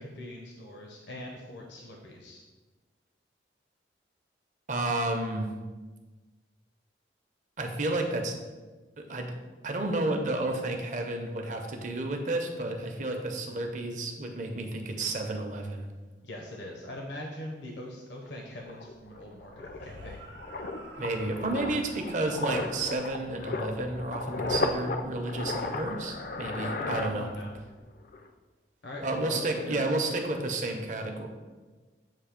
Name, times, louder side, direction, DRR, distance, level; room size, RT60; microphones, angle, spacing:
voice 1, 0.0-2.4 16.2-20.2 27.1-27.5 28.8-29.8, left 1 dB, 80° left, 0 dB, 0.8 m, -42 dB
voice 2, 4.7-5.5 7.6-8.4 9.0-9.3 9.6-15.9 21.0-27.3 29.0-31.3, right 2 dB, 45° right, 4 dB, 0.6 m, -31 dB
sound 1, 18.3-18.4 18.7-27.7 28.0-28.3, left 3 dB, 50° left, 0.4 m, -35 dB
sound 2, 19.7-23.1, right 2 dB, 80° right, 0.8 m, -49 dB
7.5 x 2.7 x 5.0 m, 1.3 s
head